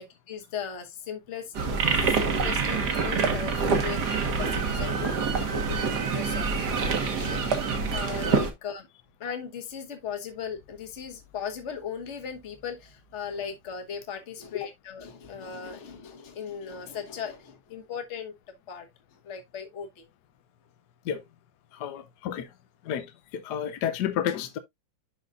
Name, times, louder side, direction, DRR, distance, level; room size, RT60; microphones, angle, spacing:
voice 1, 0.0-8.9 9.2-18.3 18.7-18.9 19.2-20.1 21.9-22.0, left 7 dB, 40° left, 1.5 m, -38 dB
sound 1, 1.5-8.5, right 5 dB, 65° right, 1.8 m, -26 dB
voice 2, 21.7-22.5 22.8-24.6, left 9 dB, 70° left, 1.3 m, -31 dB
12.0 x 4.0 x 2.5 m
omnidirectional pair, 2.0 m